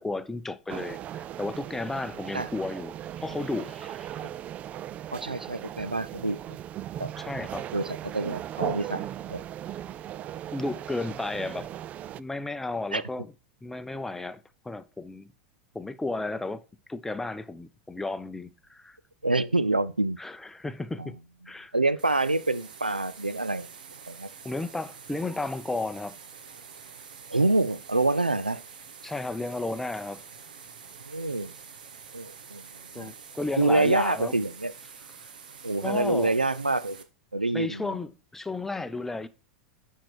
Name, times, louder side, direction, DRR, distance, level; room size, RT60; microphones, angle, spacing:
voice 1, 0.0-4.2 7.2-7.7 10.5-11.7 12.2-13.3 13.6-15.3 15.7-16.6 16.9-19.0 20.2-21.2 21.5-21.7 24.4-26.1 29.0-30.2 32.9-34.4 35.8-36.4 37.5-39.3, left 2 dB, 5° left, 0.6 m, -33 dB
sound 1, 0.7-12.2, right 11 dB, 30° right, 0.3 m, -38 dB
voice 2, 5.1-6.6 7.0-7.1 7.7-9.4 12.9-13.0 19.2-20.2 21.0-21.1 21.7-23.7 24.1-24.3 27.3-28.6 31.0-31.5 32.1-32.6 32.9-33.1 33.6-34.7 35.6-37.0 37.3-38.0, right 2 dB, 90° right, 0.5 m, -26 dB
sound 2, 22.0-37.0, right 6 dB, 70° right, 1.1 m, -47 dB
10.5 x 4.6 x 4.6 m
figure-of-eight pair, 90°, 5 cm